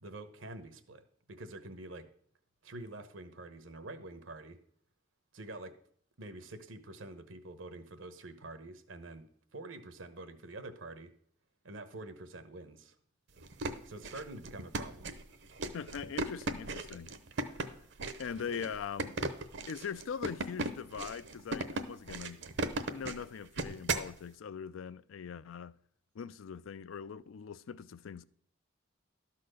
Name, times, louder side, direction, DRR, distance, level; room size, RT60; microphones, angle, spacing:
voice 1, 0.0-2.1 2.6-4.6 5.3-5.7 6.2-9.3 9.5-11.1 11.6-13.0 13.9-15.2, right 2 dB, 80° right, 1.0 m, -46 dB
sound 1, 13.4-24.1, right 3 dB, 65° right, 0.8 m, -37 dB
voice 2, 15.7-17.1 18.2-19.2 19.7-22.5 22.9-25.8 26.1-28.2, left 6 dB, 85° left, 0.4 m, -41 dB
12.5 x 4.2 x 6.5 m
head